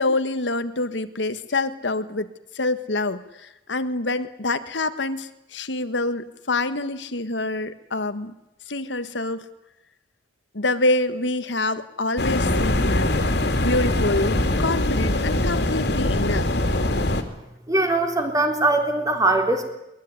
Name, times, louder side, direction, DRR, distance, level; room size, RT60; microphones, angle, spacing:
voice 1, 0.0-2.3 2.5-8.3 8.7-9.4 10.5-13.1 13.6-16.5, left 2 dB, 85° left, 11 dB, 1.5 m, -26 dB
sound 1, 12.2-17.2, left 1 dB, 65° left, 2.8 m, -22 dB
voice 2, 17.7-19.6, right 2 dB, 20° right, 4 dB, 3.7 m, -21 dB
22.5 x 20.5 x 9.6 m, 0.87 s
head